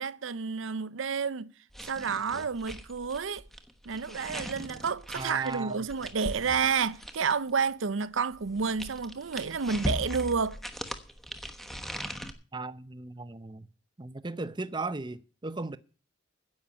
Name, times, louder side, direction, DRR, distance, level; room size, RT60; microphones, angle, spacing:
voice 1, 0.0-1.5 1.8-3.4 3.9-10.6, right 5 dB, 85° right, 0.7 m, -30 dB
sound 1, 1.7-7.5 8.3-12.3, equal, ahead, 1.1 m, -39 dB
voice 2, 5.2-5.8 12.5-13.7 14.0-15.8, right 3 dB, 25° right, 0.7 m, -36 dB
10.5 x 8.6 x 8.7 m
head